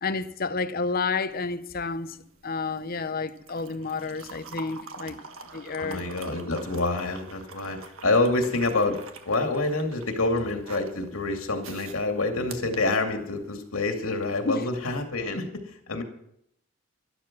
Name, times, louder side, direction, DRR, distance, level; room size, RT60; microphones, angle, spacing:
voice 1, 0.0-5.3 5.5-6.1 14.4-14.6, left 4 dB, 45° left, 0.7 m, -30 dB
sound 1, 1.3-13.6 14.9-15.0, right 4 dB, 75° right, 1.5 m, -46 dB
voice 2, 5.8-15.5 15.9-16.0, left 2 dB, 85° left, 2.4 m, -27 dB
12.5 x 12.0 x 6.0 m
head